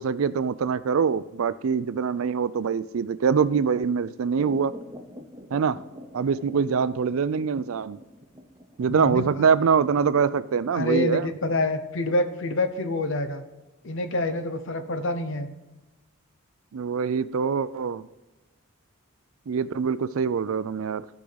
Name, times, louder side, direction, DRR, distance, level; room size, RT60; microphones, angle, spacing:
voice 1, 0.0-4.7 5.5-5.8 6.1-8.0 8.8-11.3 16.7-18.1 19.5-21.0, right 6 dB, 70° right, 15 dB, 0.4 m, -24 dB
sound 1, 4.4-13.2 13.6-13.7, equal, 15° right, 0.7 m, -46 dB
voice 2, 8.9-9.5 10.7-13.4 13.8-15.5, left 2 dB, 60° left, 9 dB, 0.9 m, -27 dB
14.5 x 4.9 x 4.0 m, 1.1 s
head